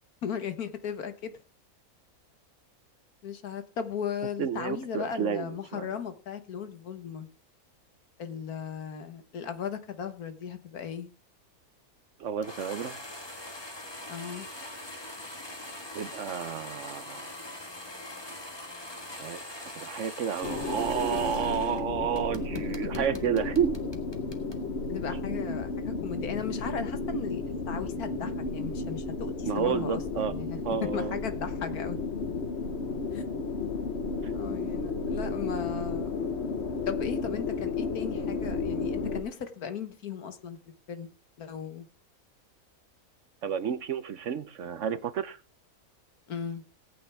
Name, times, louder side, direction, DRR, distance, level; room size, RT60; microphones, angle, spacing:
voice 1, 0.2-1.3 3.2-7.3 8.2-11.1 14.1-14.5 24.9-32.0 33.1-33.2 34.3-36.1 36.9-40.6 40.9-41.1 41.4-41.9 46.3-46.6, left 7 dB, 75° left, 1.8 m, -36 dB
voice 2, 4.4-5.9 12.2-13.0 15.9-17.3 19.1-23.9 29.5-30.3 30.6-31.2 43.4-45.4, right 8 dB, 60° right, 1.0 m, -31 dB
sound 1, 12.4-21.8 22.1-24.6, left 1 dB, 15° left, 1.4 m, -42 dB
sound 2, 20.4-39.2, left 4 dB, 50° left, 1.3 m, -33 dB
18.0 x 9.0 x 3.4 m
omnidirectional pair, 1.6 m